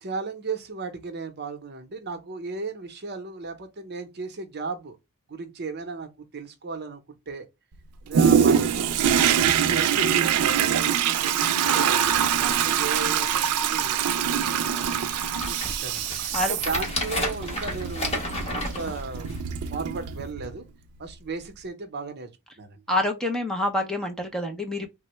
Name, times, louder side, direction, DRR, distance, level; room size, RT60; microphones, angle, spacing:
voice 1, 0.0-5.0 5.3-7.5 8.0-12.0 12.4-14.0 14.4-16.1 16.4-19.3 19.7-20.7 21.0-22.3 22.6-22.8, right 4 dB, 50° right, 0.7 m, -35 dB
Toilet flush, 8.1-20.6 21.1-21.2, right 8 dB, 90° right, 0.4 m, -24 dB
sound 1, 12.2-12.3 12.8-12.9 13.1-13.6 14.2-14.3 14.8-19.6 20.2-20.3, left 1 dB, 30° left, 1.1 m, -33 dB
voice 2, 22.9-24.9, left 1 dB, 5° left, 0.5 m, -27 dB
3.5 x 2.1 x 2.9 m
head